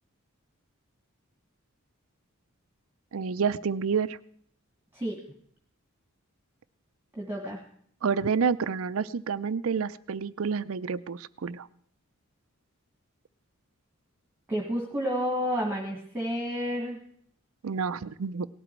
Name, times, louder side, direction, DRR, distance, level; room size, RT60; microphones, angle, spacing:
voice 1, 3.1-4.2 8.0-11.7 17.6-18.5, right 6 dB, 70° right, 15 dB, 0.5 m, -29 dB
voice 2, 7.2-7.6 14.5-17.0, equal, 10° right, 0 dB, 1.7 m, -30 dB
18.0 x 12.0 x 4.5 m, 0.63 s
head